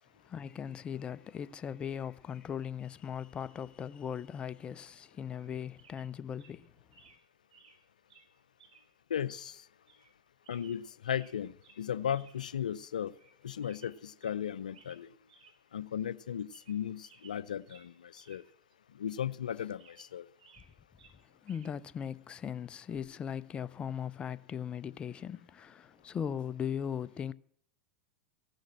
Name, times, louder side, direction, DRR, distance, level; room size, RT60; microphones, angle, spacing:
voice 1, 0.3-6.7 21.4-27.3, left 8 dB, 25° left, 0.4 m, -39 dB
sound 1, 5.4-5.5 5.8-6.1 6.4-6.6 6.9-7.2 7.5-7.8 8.1-8.3 8.6-8.9 9.2-9.3 9.9-10.1 10.4-11.4 11.6-11.8 12.1-12.4 12.7-12.8 13.1-13.3 13.6-14.4 14.7-15.0 15.3-15.5 15.9-16.0 16.4-16.8 17.0-18.4 18.7-18.8 19.4-20.7 21.0-21.7 22.9-23.2, right 5 dB, 75° right, 3.1 m, -60 dB
voice 2, 9.1-9.6 10.5-13.1 13.4-15.1 15.7-18.4 19.0-20.3, left 9 dB, 85° left, 0.5 m, -36 dB
15.5 x 6.5 x 7.6 m
hypercardioid pair, 100°, 4 cm